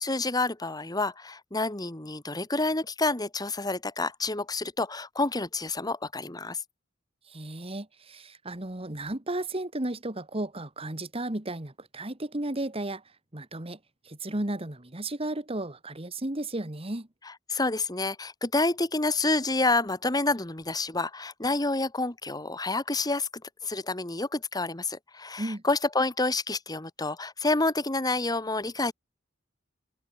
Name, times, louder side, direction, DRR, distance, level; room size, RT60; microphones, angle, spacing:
voice 1, 0.0-6.6 17.5-23.3 23.6-28.9, left 2 dB, 20° left, 1.8 m, -28 dB
voice 2, 7.3-13.0 13.3-13.8 14.1-17.1 25.4-25.6, right 1 dB, 30° right, 1.9 m, -34 dB
head